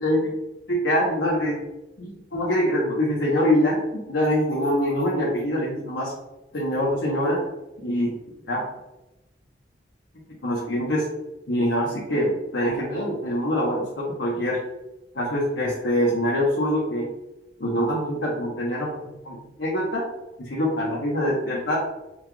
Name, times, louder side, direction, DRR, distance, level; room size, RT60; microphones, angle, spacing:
voice 1, 0.0-0.3 0.7-1.6 2.0-6.1 6.5-7.4 7.8-8.1 8.5-8.6 10.4-11.1 11.5-14.6 15.1-17.1 17.6-20.0 20.4-21.8, equal, 75° left, -5 dB, 1.0 m, -24 dB
5.6 x 2.3 x 3.1 m, 0.94 s
head